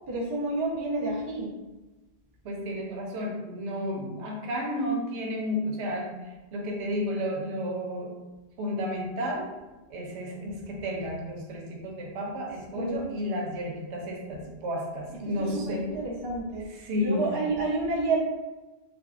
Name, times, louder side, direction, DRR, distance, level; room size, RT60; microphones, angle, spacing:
voice 1, 0.1-1.5 12.8-13.0 15.2-16.7 17.0-18.2, right 3 dB, 30° right, -3 dB, 0.5 m, -29 dB
voice 2, 2.4-6.2 6.5-8.1 8.6-9.5 9.9-15.8 16.8-17.3, equal, 85° right, -1 dB, 0.9 m, -32 dB
3.4 x 2.2 x 2.4 m, 1.1 s
omnidirectional pair, 1.1 m